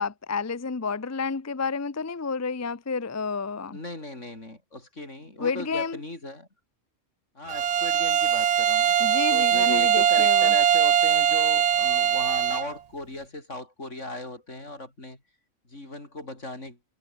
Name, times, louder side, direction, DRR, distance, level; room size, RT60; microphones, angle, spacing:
voice 1, 0.0-3.8 5.4-6.0 9.0-10.5, left 4 dB, 20° left, 0.4 m, -30 dB
voice 2, 3.7-6.5 7.3-9.0 9.3-15.2 15.7-16.8, left 2 dB, 70° left, 6.4 m, -38 dB
Bowed string instrument, 7.5-12.7, right 9 dB, 80° right, 0.3 m, -21 dB
omnidirectional pair, 1.3 m